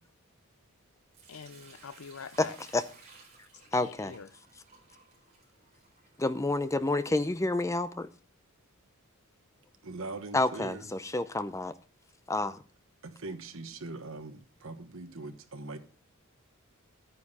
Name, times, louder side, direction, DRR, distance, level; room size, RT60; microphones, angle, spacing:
Sink (filling or washing) / Liquid, 1.1-8.1, right 4 dB, 35° right, 4.4 m, -58 dB
voice 1, 1.3-2.6 3.5-4.3, left 6 dB, 70° left, 0.6 m, -45 dB
voice 2, 3.7-4.1 6.2-8.1 10.3-11.7 12.3-12.6, left 2 dB, 15° left, 0.6 m, -29 dB
voice 3, 9.8-10.8 13.0-15.8, right 3 dB, 65° right, 1.3 m, -41 dB
11.0 x 9.4 x 4.2 m
head